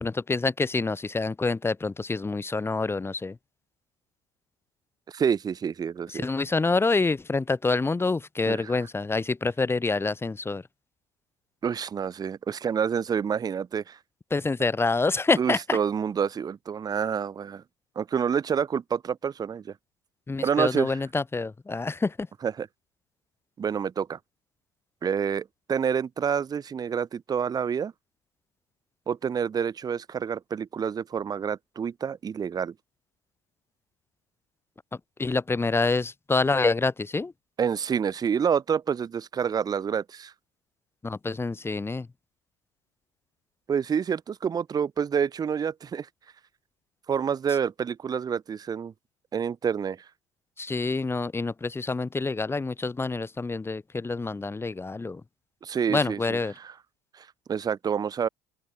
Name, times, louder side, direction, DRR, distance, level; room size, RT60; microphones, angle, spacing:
voice 1, 0.0-3.4 6.1-10.6 14.3-15.8 20.3-22.3 35.2-37.3 41.0-42.1 50.6-55.2 55.9-56.5, left 3 dB, 15° left, 1.6 m, -27 dB
voice 2, 5.1-6.3 8.5-8.6 11.6-14.0 15.4-17.6 18.0-19.7 20.4-21.0 22.4-22.7 23.6-24.2 25.0-27.9 29.1-32.7 37.6-40.3 43.7-46.1 47.1-48.9 49.3-50.0 55.6-56.4 57.1-58.3, right 7 dB, 25° right, 0.7 m, -28 dB
open air
hypercardioid pair, 70°, 15 cm